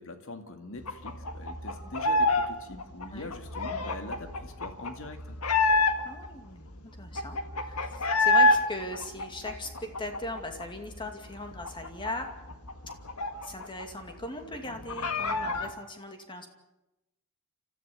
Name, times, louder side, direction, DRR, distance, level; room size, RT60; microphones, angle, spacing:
voice 1, 0.0-5.4, left 2 dB, 65° left, 6 dB, 2.2 m, -43 dB
sound 1, 0.9-2.5 2.7-6.3 6.7-6.8 7.0-8.6 8.9-10.6 11.0-11.1 11.4-13.8 14.1-14.2 14.5-15.7, left 2 dB, 85° left, 1.8 m, -27 dB
voice 2, 6.0-6.7 7.0-12.3 13.4-16.5, left 1 dB, 20° left, 5 dB, 2.4 m, -39 dB
30.0 x 14.0 x 7.1 m, 0.97 s
head